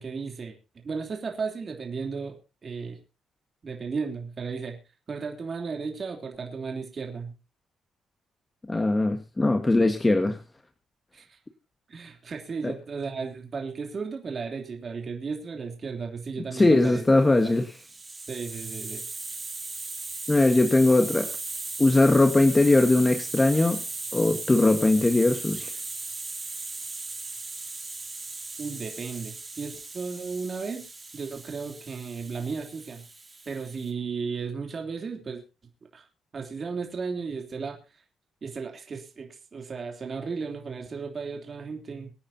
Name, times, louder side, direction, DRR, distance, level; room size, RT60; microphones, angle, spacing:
voice 1, 0.0-3.0 3.6-4.8 5.1-7.3 11.1-11.4 11.9-17.0 17.3-17.5 18.3-19.1 28.6-33.0 33.4-35.4 35.9-36.0 36.3-37.8 38.4-42.1, right 5 dB, 35° right, 2 dB, 3.3 m, -35 dB
voice 2, 8.7-10.4 12.6-12.7 16.5-17.7 20.3-21.3 21.8-23.8 24.1-25.7, left 2 dB, 15° left, 6 dB, 1.5 m, -20 dB
Hiss, 17.3-33.9, right 3 dB, 20° right, 3.0 m, -37 dB
24.5 x 9.6 x 2.8 m, 0.31 s
cardioid pair, 125°, 0 cm